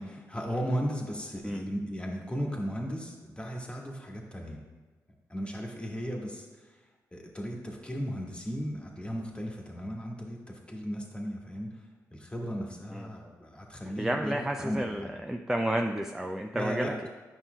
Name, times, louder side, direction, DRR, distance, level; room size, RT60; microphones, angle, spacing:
voice 1, 0.0-4.6 5.3-6.8 7.1-14.8 16.5-17.0, equal, 15° left, -1 dB, 1.5 m, -36 dB
voice 2, 14.0-17.1, right 1 dB, 5° right, 4 dB, 0.4 m, -31 dB
9.0 x 5.6 x 2.2 m, 1.3 s
supercardioid pair, 50°, 7 cm